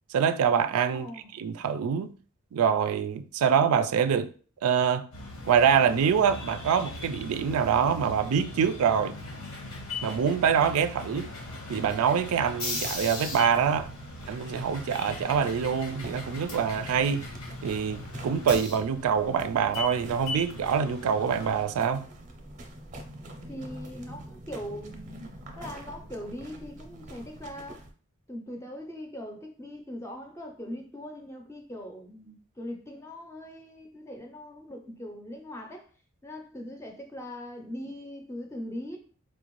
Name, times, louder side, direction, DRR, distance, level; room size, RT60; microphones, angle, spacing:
voice 1, 0.1-1.1 1.3-2.2 2.5-4.3 4.6-5.1 5.5-9.2 10.0-11.3 11.7-13.9 14.3-17.3 17.6-22.0, right 7 dB, 85° right, 0.3 m, -25 dB
voice 2, 0.9-1.3 23.5-27.8 28.3-35.9 36.2-39.0, left 1 dB, 10° left, 0.5 m, -41 dB
sound 1, 5.1-21.6, left 2 dB, 85° left, 1.3 m, -39 dB
sound 2, 12.7-27.9, right 1 dB, 35° right, 0.5 m, -46 dB
4.3 x 2.5 x 3.0 m
head